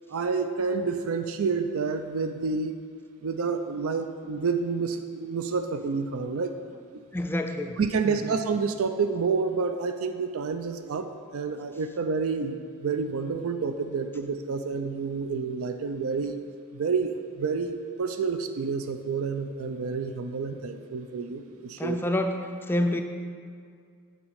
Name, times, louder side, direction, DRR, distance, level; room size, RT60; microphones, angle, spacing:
voice 1, 0.1-2.7 3.2-6.5 7.8-16.4 16.7-22.0, right 5 dB, 70° right, 8 dB, 0.5 m, -29 dB
voice 2, 7.1-7.8 8.1-8.3 21.8-22.4 22.7-23.0, left 1 dB, 10° left, 5 dB, 0.3 m, -27 dB
9.2 x 4.1 x 6.4 m, 2.2 s
head